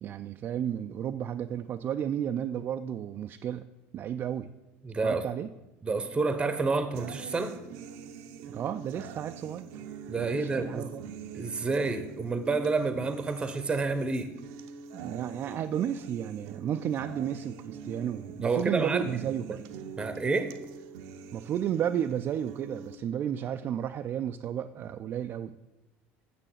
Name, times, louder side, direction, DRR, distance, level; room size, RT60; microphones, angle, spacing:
voice 1, 0.0-3.7 3.9-4.5 5.0-5.5 8.5-9.7 10.3-11.1 14.9-19.6 21.3-25.6, right 9 dB, 40° right, 7 dB, 0.4 m, -33 dB
voice 2, 4.8-5.2 5.8-7.6 10.1-10.9 11.3-14.3 18.4-19.1 20.0-20.5, right 3 dB, 15° right, 10 dB, 0.8 m, -29 dB
sound 1, 6.9-23.0, right 6 dB, 75° right, 0.7 m, -44 dB
7.2 x 6.8 x 7.3 m, 1.0 s
cardioid pair, 125°, 6 cm